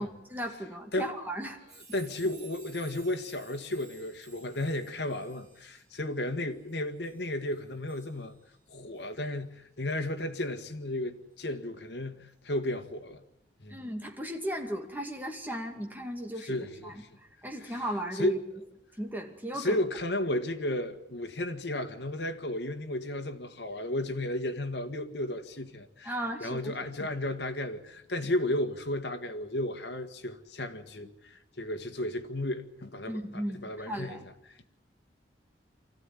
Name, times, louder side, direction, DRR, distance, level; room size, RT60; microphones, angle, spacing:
voice 1, 0.0-1.6 13.7-16.9 17.4-18.4 19.0-19.8 26.1-26.7 33.1-34.2, equal, 10° right, 2.3 m, -36 dB
sound 1, 1.7-8.6 8.9-9.1 10.4-10.5, right 4 dB, 45° right, 7.2 m, -56 dB
voice 2, 1.9-8.4 8.7-13.2 13.6-13.8 16.4-17.2 17.6-17.9 18.1-18.4 19.5-34.3, left 1 dB, 70° left, 1.7 m, -34 dB
24.5 x 14.5 x 10.0 m
head